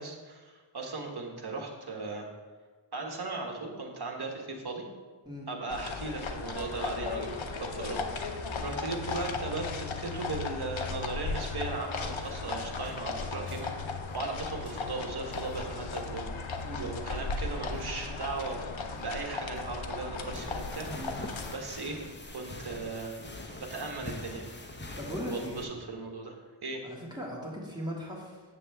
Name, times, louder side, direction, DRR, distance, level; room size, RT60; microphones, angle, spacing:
voice 1, 0.0-2.2 2.9-4.8 5.5-18.6 18.9-20.9 21.5-22.0 22.3-23.2 23.6-24.7 25.2-26.9, right 3 dB, 55° right, 1 dB, 1.3 m, -37 dB
sound 1, 5.7-21.6, left 4 dB, 80° left, 0.7 m, -36 dB
sound 2, 12.0-24.3, left 1 dB, 50° left, 1.3 m, -54 dB
sound 3, 20.3-25.7, left 2 dB, 25° left, 0.7 m, -43 dB
voice 2, 25.0-25.7 26.8-28.4, equal, 10° right, -4 dB, 2.1 m, -39 dB
7.8 x 7.0 x 3.4 m, 1.4 s
wide cardioid pair, 55°, 46 cm